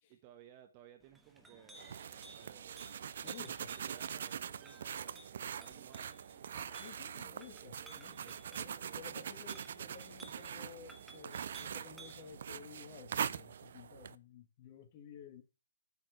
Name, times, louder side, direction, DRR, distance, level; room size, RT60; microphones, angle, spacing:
voice 1, 0.1-2.0 2.3-2.9 3.4-6.2 8.2-9.1, right 10 dB, 30° right, 1.3 m, -59 dB
Chink clink, 1.0-12.3, right 2 dB, 5° right, 1.2 m, -59 dB
sound 1, 1.7-14.2, right 8 dB, 55° right, 0.5 m, -43 dB
voice 2, 3.2-3.7 6.8-15.4, left 8 dB, 35° left, 1.3 m, -54 dB
8.4 x 4.4 x 6.6 m
figure-of-eight pair, 140°, 0 cm